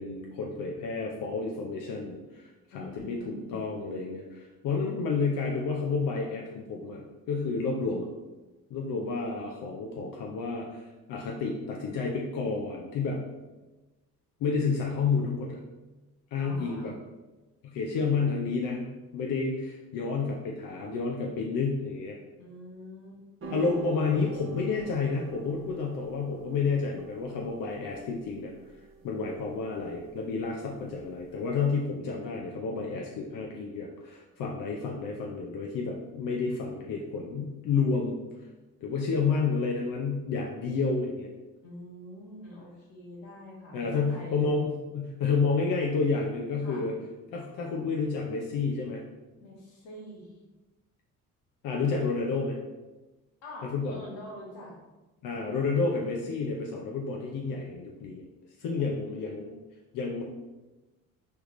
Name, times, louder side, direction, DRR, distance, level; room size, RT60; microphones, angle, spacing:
voice 1, 0.0-8.1 8.7-13.2 14.4-15.6 16.3-17.0 17.6-18.8 19.1-22.2 23.5-28.5 29.0-38.2 38.8-41.3 43.7-46.9 47.3-49.0 51.6-52.6 53.6-54.0 55.2-58.3 58.6-59.6 59.9-60.2, left 4 dB, 50° left, 0 dB, 0.7 m, -30 dB
voice 2, 2.7-3.6 16.4-16.9 22.4-23.2 41.6-44.5 46.6-46.9 49.4-50.4 53.4-54.8 58.8-59.6, left 1 dB, 70° left, -3 dB, 1.4 m, -45 dB
sound 1, 23.4-31.8, right 3 dB, 30° right, 1.1 m, -47 dB
4.7 x 3.3 x 3.2 m, 1.1 s
hypercardioid pair, 50°, 43 cm